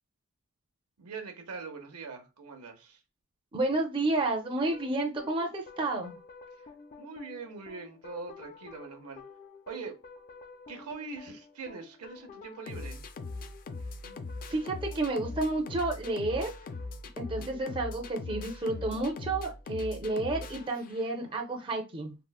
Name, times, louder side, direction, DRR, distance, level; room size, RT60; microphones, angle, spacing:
voice 1, 1.0-3.0 6.5-9.2 9.7-10.0 10.7-13.0, right 4 dB, 80° right, 0.7 m, -43 dB
voice 2, 3.5-6.2 14.0-14.1 14.5-16.5 17.2-22.2, right 2 dB, 25° right, 0.5 m, -31 dB
sound 1, 4.7-21.3, left 3 dB, 40° left, 0.3 m, -43 dB
3.6 x 2.0 x 2.2 m
head